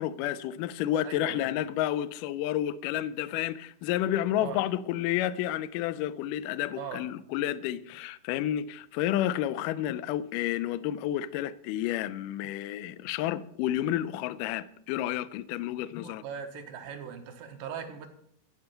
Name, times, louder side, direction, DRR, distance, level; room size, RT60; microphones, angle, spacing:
voice 1, 0.0-16.2, left 12 dB, 90° left, 1.9 m, -30 dB
voice 2, 1.0-1.4 4.4-4.6 6.8-7.0 16.0-18.1, right 7 dB, 65° right, 2.9 m, -39 dB
14.5 x 8.1 x 5.7 m
omnidirectional pair, 4.5 m